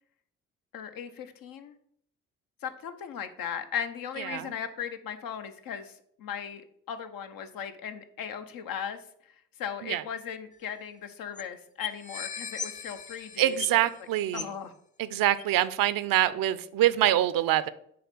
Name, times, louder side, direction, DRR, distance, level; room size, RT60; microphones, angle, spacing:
voice 1, 0.7-1.7 2.6-6.6 6.9-9.0 9.6-13.8 14.3-14.7, left 8 dB, 65° left, 9 dB, 0.9 m, -37 dB
sound 1, 10.5-10.6 10.8-10.9 11.4-11.5 11.8-14.0 14.3-14.6 15.4-15.5, left 6 dB, 20° left, 0.5 m, -38 dB
voice 2, 13.4-14.5 15.0-17.7, right 13 dB, 65° right, 15 dB, 0.6 m, -25 dB
7.7 x 3.4 x 6.0 m, 0.69 s
hypercardioid pair, 40°, 37 cm